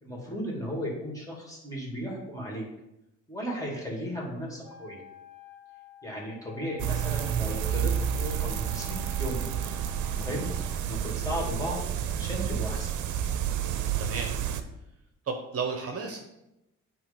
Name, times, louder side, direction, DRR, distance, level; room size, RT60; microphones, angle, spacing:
voice 1, 0.0-2.6 3.3-5.0 6.0-9.4 10.0-10.5 10.8-11.8 12.1-12.9, equal, 10° left, -3 dB, 2.6 m, -35 dB
Wind instrument woodwind instrument, 4.6-10.8, left 5 dB, 15° right, 2.1 m, -50 dB
sound 1, 6.8-14.6, right 9 dB, 75° right, 0.7 m, -30 dB
voice 2, 14.0-14.3 15.3-16.2, right 5 dB, 50° right, 3 dB, 1.0 m, -33 dB
8.4 x 3.1 x 5.3 m, 0.89 s
cardioid pair, 90°, 30 cm